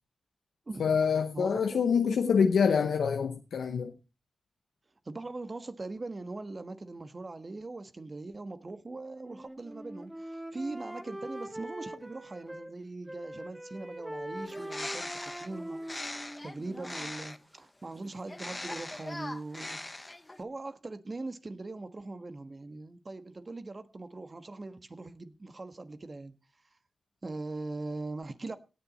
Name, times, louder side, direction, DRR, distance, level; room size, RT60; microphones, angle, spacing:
voice 1, 0.8-3.9, left 6 dB, 85° left, 0.7 m, -26 dB
voice 2, 1.3-2.2 5.0-15.1 15.4-15.8 16.1-19.8 20.4-26.3 27.2-28.6, right 2 dB, 45° right, 1.3 m, -41 dB
Wind instrument woodwind instrument, 9.2-12.7 13.1-17.1, right 1 dB, 15° right, 1.6 m, -43 dB
Bird, 14.4-17.5 18.3-20.4, left 2 dB, 25° left, 0.9 m, -41 dB
18.0 x 7.3 x 4.0 m
cardioid pair, 45°, 0 cm